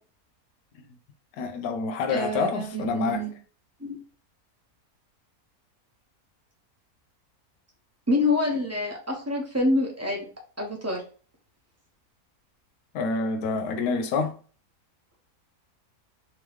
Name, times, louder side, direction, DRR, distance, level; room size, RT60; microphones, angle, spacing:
voice 1, 1.4-3.3 12.9-14.4, left 4 dB, 80° left, 1.1 m, -27 dB
voice 2, 2.1-3.3 3.8-4.0 8.1-10.2 10.6-11.0, left 2 dB, 10° right, 0.9 m, -26 dB
3.6 x 3.0 x 3.3 m
omnidirectional pair, 1.6 m